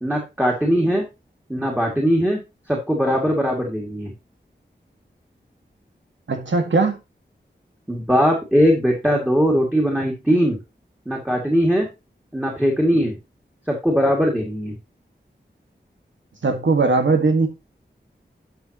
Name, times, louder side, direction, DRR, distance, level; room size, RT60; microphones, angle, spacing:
voice 1, 0.0-1.0 1.5-2.4 2.7-4.1 7.9-10.6 11.1-11.9 12.3-13.2 13.7-14.7, equal, 5° right, 2.3 m, -20 dB
voice 2, 6.3-7.0 16.4-17.5, right 3 dB, 85° right, 1.8 m, -19 dB
11.5 x 6.7 x 2.9 m
wide cardioid pair, 80°, 19 cm